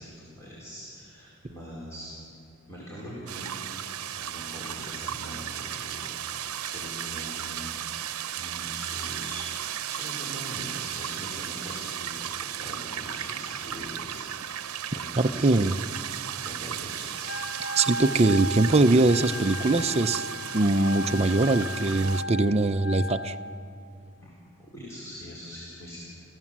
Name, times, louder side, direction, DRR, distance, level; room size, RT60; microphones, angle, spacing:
voice 1, 0.0-2.1 2.7-9.5 9.9-16.1 16.4-17.4 24.2-24.3 24.6-26.0, equal, 15° left, -7 dB, 4.1 m, -42 dB
sound 1, 3.3-22.2, right 10 dB, 90° right, 0.8 m, -35 dB
voice 2, 15.2-15.7 17.8-20.3 20.5-23.3, right 2 dB, 30° right, 10 dB, 0.6 m, -22 dB
Wind instrument woodwind instrument, 17.2-23.4, equal, 50° left, 1.8 m, -35 dB
29.5 x 15.5 x 7.4 m, 2.6 s
head